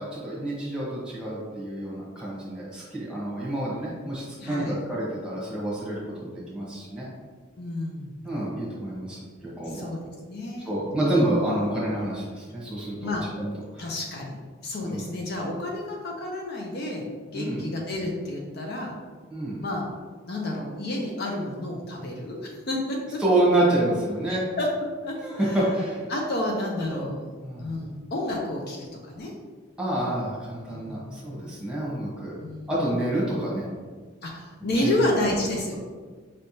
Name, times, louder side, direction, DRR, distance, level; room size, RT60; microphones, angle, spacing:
voice 1, 0.0-7.1 8.2-9.9 10.6-13.9 14.8-15.1 17.3-17.6 19.3-19.6 23.2-24.4 25.2-26.1 26.9-27.0 27.4-27.7 29.8-32.4 32.7-33.6 34.6-35.0, right 1 dB, 5° right, -7 dB, 1.2 m, -28 dB
voice 2, 4.4-4.8 7.6-8.2 9.6-10.0 10.3-10.7 13.0-13.2 13.8-18.9 19.6-19.9 20.3-23.2 24.3-25.6 26.1-27.2 27.6-29.3 30.7-31.3 32.4-32.8 34.2-35.8, left 1 dB, 50° left, -1 dB, 0.6 m, -30 dB
5.2 x 3.4 x 2.8 m, 1.5 s
head